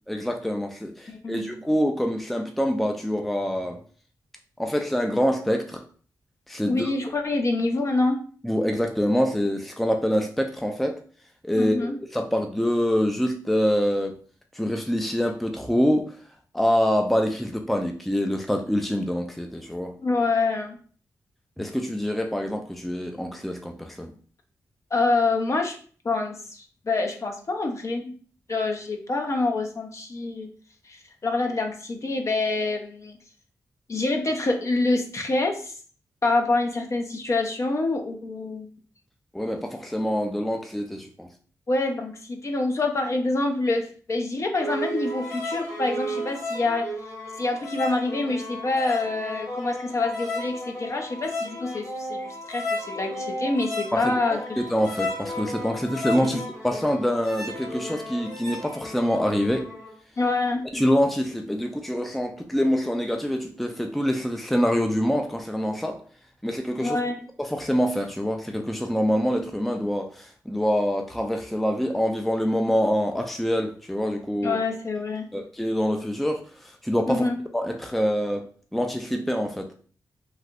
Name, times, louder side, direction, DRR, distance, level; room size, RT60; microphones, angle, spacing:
voice 1, 0.1-3.8 4.6-5.8 6.5-6.9 8.4-11.0 11.4-14.2 14.5-16.1 16.5-19.9 21.6-24.1 39.3-41.3 53.9-59.7 60.7-66.0 66.4-67.0 67.4-74.6 75.3-77.2 77.5-78.4 78.7-79.7, equal, ahead, 4 dB, 0.4 m, -25 dB
voice 2, 1.1-1.5 6.6-8.2 11.5-12.0 20.0-20.8 24.9-25.8 26.0-28.1 28.5-30.5 30.8-33.2 33.9-35.7 36.2-38.7 41.7-46.8 47.4-54.6 56.2-56.4 60.2-60.6 66.8-67.2 74.4-75.3 77.1-77.4, left 3 dB, 45° left, 3 dB, 0.6 m, -26 dB
sound 1, 44.6-59.9, left 1 dB, 70° left, 1.4 m, -34 dB
3.2 x 2.7 x 2.5 m, 0.43 s
cardioid pair, 70°, 7 cm